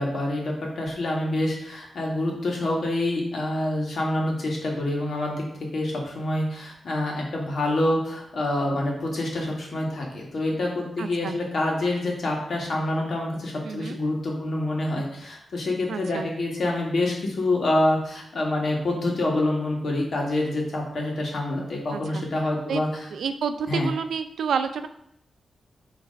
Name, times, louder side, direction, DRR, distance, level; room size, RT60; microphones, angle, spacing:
voice 1, 0.0-5.5 5.7-23.1 23.7-23.9, left 1 dB, 60° left, -1 dB, 1.8 m, -26 dB
voice 2, 11.0-11.4 13.6-14.0 15.9-16.3 21.9-22.2 22.7-22.8 23.1-24.9, right 6 dB, 90° right, 9 dB, 0.4 m, -29 dB
6.4 x 3.3 x 5.1 m, 0.72 s
wide cardioid pair, 110°, 0 cm